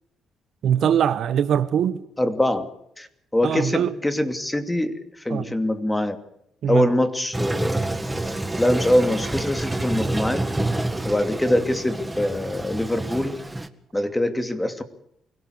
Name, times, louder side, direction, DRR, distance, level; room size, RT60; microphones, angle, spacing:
voice 1, 0.6-2.0 3.4-3.9 5.3-5.4 6.6-6.9, right 9 dB, 65° right, 1.3 m, -22 dB
voice 2, 2.2-2.7 3.0-6.2 6.7-7.8 8.6-10.5 11.0-13.4 13.9-14.8, left 1 dB, 10° left, 2.6 m, -23 dB
Toilet flush, 7.3-13.7, right 2 dB, 10° right, 1.8 m, -28 dB
24.5 x 17.0 x 8.2 m
cardioid pair, 90°, 0 cm